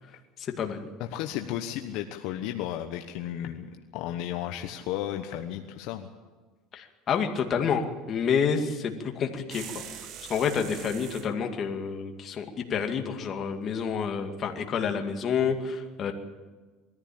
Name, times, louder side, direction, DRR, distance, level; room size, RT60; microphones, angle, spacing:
voice 1, 0.4-0.9 6.7-9.6 10.3-16.1, left 6 dB, 35° left, 4 dB, 2.2 m, -29 dB
voice 2, 1.0-6.1, left 11 dB, 70° left, 5 dB, 1.2 m, -34 dB
sound 1, 9.5-11.4, right 9 dB, 50° right, 1.4 m, -42 dB
21.0 x 14.5 x 8.7 m, 1.4 s
cardioid pair, 135°, 0 cm